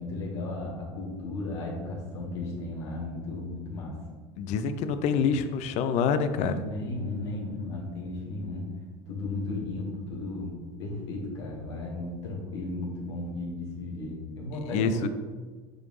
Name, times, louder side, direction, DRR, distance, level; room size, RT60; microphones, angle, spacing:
voice 1, 0.0-4.0 6.3-8.7 9.1-15.1, left 2 dB, 80° left, -3 dB, 1.7 m, -35 dB
voice 2, 4.4-6.6 14.5-15.1, left 6 dB, 55° left, 11 dB, 0.5 m, -26 dB
6.3 x 5.0 x 3.1 m, 1.4 s
hypercardioid pair, 80°, 14 cm